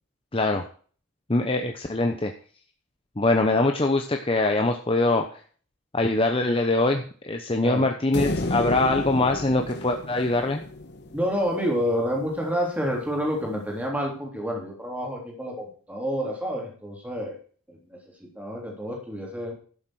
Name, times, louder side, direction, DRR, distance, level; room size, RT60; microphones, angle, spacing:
voice 1, 0.3-0.6 1.3-2.3 3.2-5.4 5.9-10.6, left 2 dB, 25° left, 4 dB, 0.9 m, -23 dB
sound 1, 8.1-11.5, left 2 dB, 50° left, 1.4 m, -31 dB
voice 2, 11.1-17.4 17.7-19.5, equal, 5° right, -1 dB, 3.3 m, -29 dB
12.0 x 7.4 x 6.3 m, 0.43 s
head